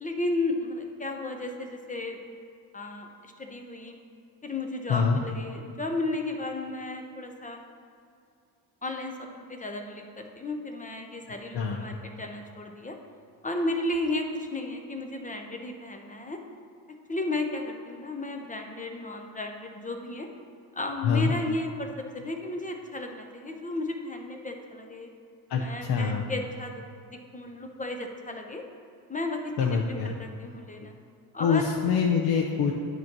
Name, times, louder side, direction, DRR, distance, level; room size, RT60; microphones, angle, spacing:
voice 1, 0.0-2.2 2.7-4.0 4.4-7.6 8.8-13.0 13.4-16.4 17.1-20.3 20.7-25.1 25.6-28.6 29.1-30.9 31.3-31.7, left 2 dB, 15° left, 3 dB, 0.7 m, -34 dB
voice 2, 25.5-26.2 29.6-30.1 31.4-32.7, left 6 dB, 55° left, 0 dB, 0.8 m, -25 dB
9.1 x 3.1 x 5.9 m, 2.4 s
supercardioid pair, 85°, 46 cm